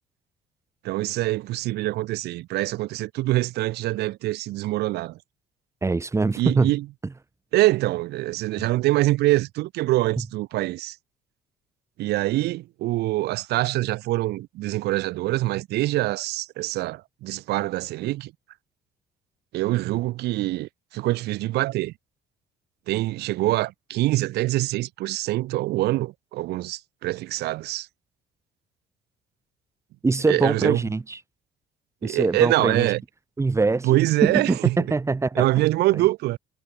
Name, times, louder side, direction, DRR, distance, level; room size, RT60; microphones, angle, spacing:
voice 1, 0.8-5.2 6.4-6.8 7.5-11.0 12.0-18.3 19.5-21.9 22.9-27.9 30.3-30.8 32.0-33.0 33.8-34.8 35.4-36.4, right 17 dB, 75° right, 0.8 m, -24 dB
voice 2, 5.8-6.7 30.0-31.2 32.0-32.9 33.4-35.4 35.9-36.0, right 3 dB, 15° right, 1.0 m, -23 dB
cardioid pair, 110°, 17 cm